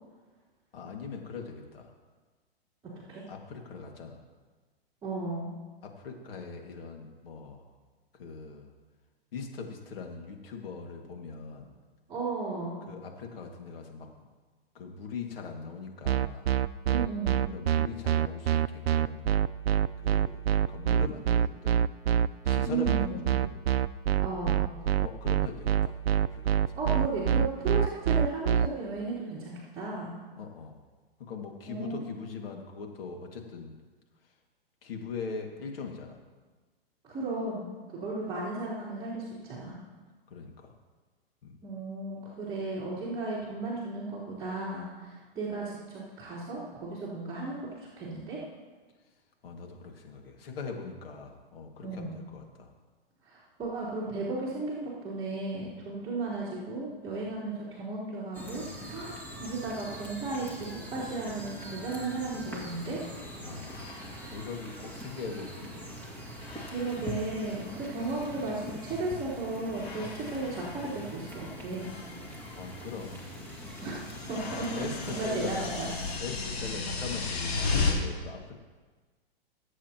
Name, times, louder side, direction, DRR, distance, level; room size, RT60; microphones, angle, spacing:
voice 1, 0.7-1.9 3.3-4.2 5.8-7.7 8.1-8.7 9.3-11.7 12.9-14.1 14.7-16.5 17.5-19.2 20.0-21.8 22.4-23.5 25.0-26.7 30.4-30.8 31.2-33.7 34.8-36.2 40.3-40.7 41.4-41.5 49.4-52.7 63.4-66.2 72.5-73.3 74.8-75.7 76.2-78.5, left 5 dB, 70° left, 2 dB, 2.2 m, -41 dB
voice 2, 5.0-5.5 12.1-12.9 16.9-17.4 22.6-23.3 24.2-24.7 26.8-30.2 31.7-32.0 37.0-39.8 41.6-48.4 51.8-52.2 53.2-63.0 66.7-71.9 73.8-74.8 75.1-75.9, right 3 dB, 15° right, -12 dB, 3.7 m, -35 dB
sound 1, 16.0-28.7, right 10 dB, 85° right, 0.5 m, -25 dB
sound 2, 58.3-76.2, equal, 5° left, 2.4 m, -43 dB
sound 3, 63.6-66.0 66.3-67.6 67.9-69.1 69.7-77.9, left 4 dB, 90° left, 3.1 m, -37 dB
22.0 x 8.2 x 3.0 m, 1.4 s
hypercardioid pair, 130°, 30 cm